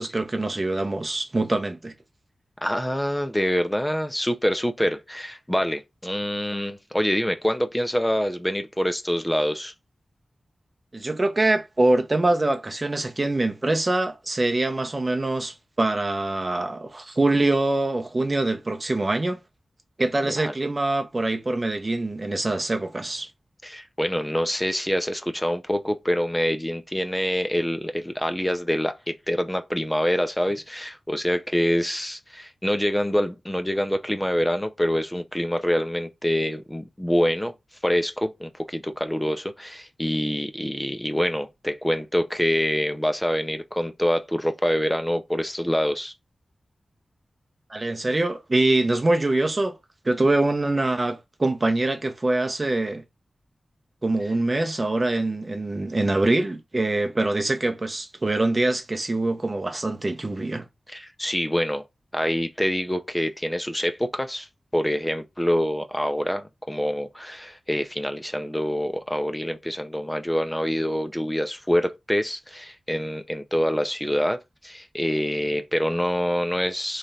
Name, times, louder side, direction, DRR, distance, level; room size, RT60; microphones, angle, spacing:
voice 1, 0.0-1.9 10.9-19.4 20.0-23.3 47.7-49.8 50.0-53.0 54.0-60.6, right 2 dB, 30° right, 0.8 m, -24 dB
voice 2, 2.6-9.7 20.2-20.5 23.6-37.5 37.8-46.1 60.9-61.8 62.1-64.5 64.7-77.0, equal, 5° left, 0.6 m, -26 dB
3.5 x 3.3 x 4.0 m
wide cardioid pair, 105°, 0 cm